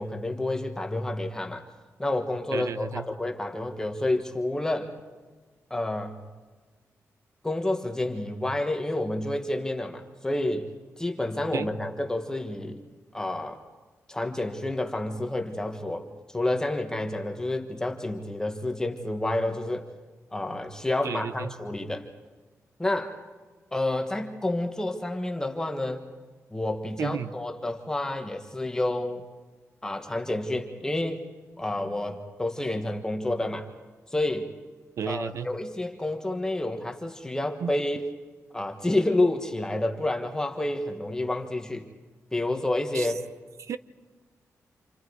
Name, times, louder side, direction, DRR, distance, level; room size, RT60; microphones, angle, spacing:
voice 1, 0.0-1.6 2.0-4.9 5.7-6.2 7.4-10.7 11.0-12.8 13.1-13.6 14.1-19.9 20.3-22.1 22.8-23.2 23.7-26.0 26.5-29.2 29.8-31.2 31.6-33.7 34.1-34.5 35.1-38.1 38.5-41.9 42.3-43.2, left 1 dB, 10° left, 4 dB, 1.4 m, -29 dB
voice 2, 2.5-3.0 11.5-11.7 21.0-21.5 27.0-27.3 35.0-35.5 37.6-37.7 42.9-43.1 43.6-43.8, right 7 dB, 70° right, 14 dB, 0.7 m, -32 dB
29.5 x 27.5 x 4.8 m, 1.4 s
wide cardioid pair, 155°, 5 cm